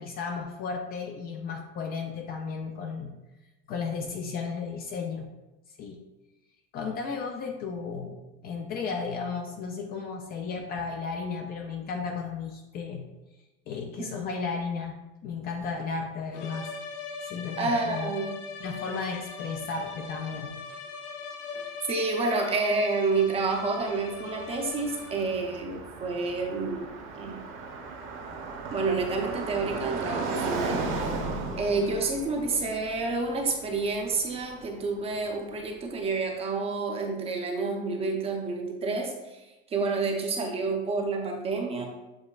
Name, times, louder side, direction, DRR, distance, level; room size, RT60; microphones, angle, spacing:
voice 1, 0.0-3.1 3.7-5.3 5.8-6.0 6.7-13.1 13.7-15.0 15.2-16.7 17.2-18.1 18.6-20.5, left 5 dB, 35° left, 3 dB, 0.4 m, -34 dB
sound 1, 16.3-25.5, left 4 dB, 75° left, 0.7 m, -40 dB
voice 2, 17.6-18.3 21.9-26.9 27.2-27.4 28.7-31.2 31.6-39.4 39.7-41.9, right 3 dB, 20° right, 1 dB, 0.6 m, -29 dB
Car passing by, 23.2-35.2, right 3 dB, 45° right, 0.9 m, -36 dB
7.1 x 3.1 x 2.4 m, 1.0 s
cardioid pair, 150°, 29 cm